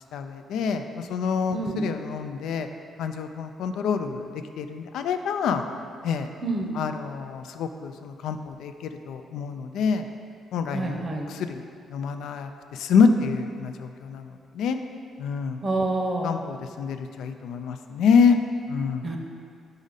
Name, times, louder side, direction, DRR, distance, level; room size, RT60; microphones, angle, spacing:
voice 1, 0.1-0.8 1.1-2.7 3.0-4.2 4.6-5.6 6.0-6.3 6.8-10.1 10.5-11.0 11.4-11.6 11.9-12.5 12.8-14.3 14.6-14.8 15.2-15.6 16.2-18.4 18.7-19.1, left 5 dB, 80° left, 7 dB, 0.3 m, -26 dB
voice 2, 1.5-1.9 6.4-6.7 10.7-11.3 15.6-16.4 19.0-19.2, right 2 dB, 35° right, 2 dB, 0.7 m, -27 dB
5.2 x 4.9 x 4.0 m, 2.3 s
cardioid pair, 90°, 0 cm